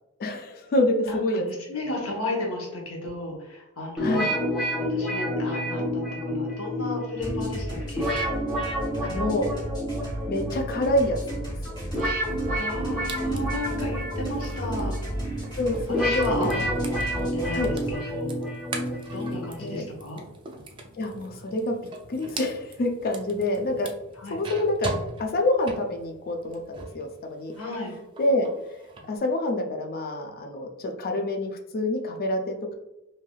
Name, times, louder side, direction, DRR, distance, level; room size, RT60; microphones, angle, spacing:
voice 1, 0.2-1.4 4.0-4.3 9.0-9.5 10.3-11.7 15.6-16.7 17.5-17.7 19.6-19.8 21.0-21.7 22.1-23.9 24.3-24.9 25.2-27.5 28.2-28.5 29.1-32.8, left 1 dB, 45° left, 3 dB, 0.4 m, -27 dB
voice 2, 1.1-4.3 4.8-8.1 12.5-14.9 16.0-18.4 19.1-20.2 24.2-24.4 27.6-27.9, left 2 dB, 70° left, -2 dB, 0.9 m, -34 dB
sound 1, 4.0-19.9, equal, ahead, 1.0 m, -30 dB
sound 2, 7.2-18.0, equal, 20° left, 1.4 m, -34 dB
sound 3, 11.9-27.1 27.4-29.1, right 2 dB, 20° right, 0.3 m, -41 dB
3.2 x 2.7 x 2.2 m, 0.91 s
head